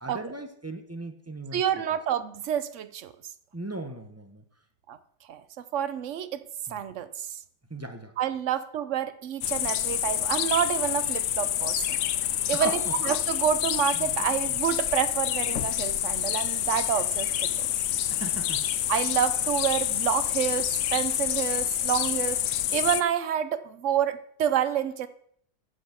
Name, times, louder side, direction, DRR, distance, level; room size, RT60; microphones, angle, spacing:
voice 1, 0.0-1.6 3.5-4.4 6.7-6.8 7.7-8.1 12.5-13.0 13.9-14.0 18.1-18.6, right 2 dB, 20° right, 6 dB, 0.4 m, -37 dB
voice 2, 1.5-3.1 4.9-5.0 5.3-5.4 5.7-6.4 6.7-7.4 8.2-12.0 12.5-17.7 18.9-25.1, right 9 dB, 60° right, 13 dB, 0.8 m, -28 dB
sound 1, 9.4-23.0, left 11 dB, 70° left, 0.7 m, -28 dB
10.0 x 6.3 x 7.2 m, 0.67 s
omnidirectional pair, 1.9 m